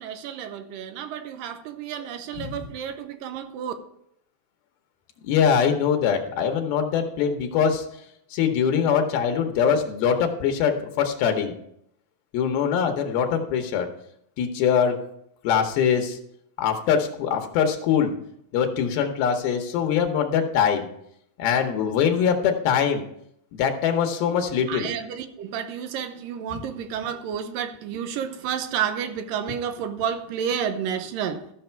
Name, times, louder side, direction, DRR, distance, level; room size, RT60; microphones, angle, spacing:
voice 1, 0.0-3.7 24.7-31.5, right 8 dB, 75° right, 9 dB, 2.3 m, -30 dB
voice 2, 5.2-7.8 8.3-11.6 12.3-13.9 14.4-15.0 15.4-16.2 16.6-18.1 18.5-20.9 21.4-23.0 23.6-24.9, left 7 dB, 80° left, 5 dB, 2.8 m, -23 dB
14.0 x 6.4 x 4.5 m, 0.74 s
omnidirectional pair, 4.4 m